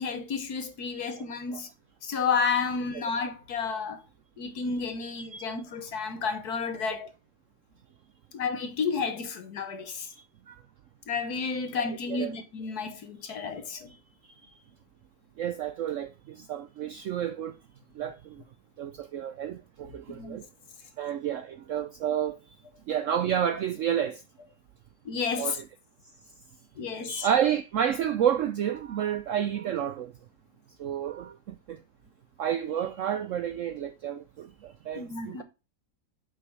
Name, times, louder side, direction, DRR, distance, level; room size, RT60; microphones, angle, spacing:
voice 1, 0.0-1.7 2.0-4.0 4.4-7.1 8.3-10.1 11.1-13.9 20.2-20.4 25.1-25.6 26.8-27.3 35.0-35.4, left 5 dB, 65° left, 1.8 m, -31 dB
voice 2, 5.0-5.5 10.5-10.6 12.1-12.3 15.4-16.1 16.5-17.5 18.0-18.2 18.8-20.4 21.0-22.4 22.9-24.2 25.4-25.6 27.1-30.1 30.8-31.3 32.4-34.5 34.9-35.4, right 9 dB, 70° right, 0.7 m, -30 dB
8.0 x 6.0 x 3.2 m
omnidirectional pair, 1.8 m